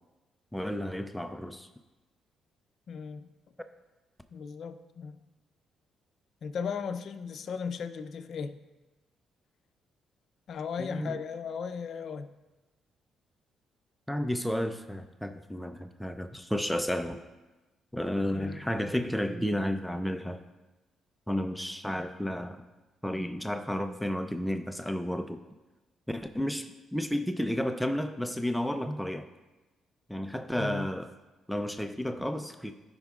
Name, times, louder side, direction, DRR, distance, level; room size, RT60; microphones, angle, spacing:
voice 1, 0.5-1.7 10.8-11.2 14.1-17.2 17.9-20.4 21.3-22.6 23.0-25.4 26.1-29.3 30.1-31.1 31.5-32.7, equal, 5° left, 8 dB, 0.4 m, -32 dB
voice 2, 2.9-3.3 4.3-5.2 6.4-8.6 10.5-12.3 18.3-18.6 30.6-30.9, left 6 dB, 60° left, 9 dB, 0.5 m, -36 dB
14.0 x 5.5 x 2.4 m, 1.1 s
cardioid pair, 90°, 0 cm